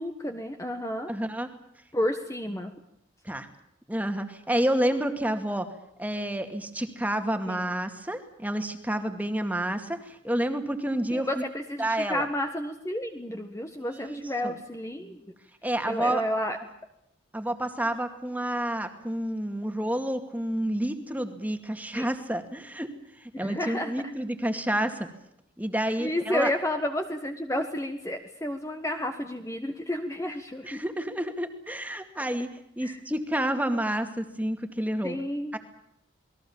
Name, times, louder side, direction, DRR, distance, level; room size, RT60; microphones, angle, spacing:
voice 1, 0.0-1.1 1.9-2.7 7.5-7.7 11.1-15.3 15.9-16.6 21.9-22.1 23.3-23.9 26.0-30.8 32.8-33.0 35.0-35.5, left 1 dB, 15° left, 5 dB, 1.5 m, -31 dB
voice 2, 1.1-1.5 3.2-3.5 3.9-5.7 6.0-11.4 11.8-12.3 13.9-14.6 15.6-16.2 17.3-22.9 23.2-25.1 25.6-26.5 30.6-35.2 35.5-35.6, right 1 dB, 10° right, 6 dB, 2.2 m, -29 dB
28.5 x 21.0 x 7.2 m, 0.78 s
head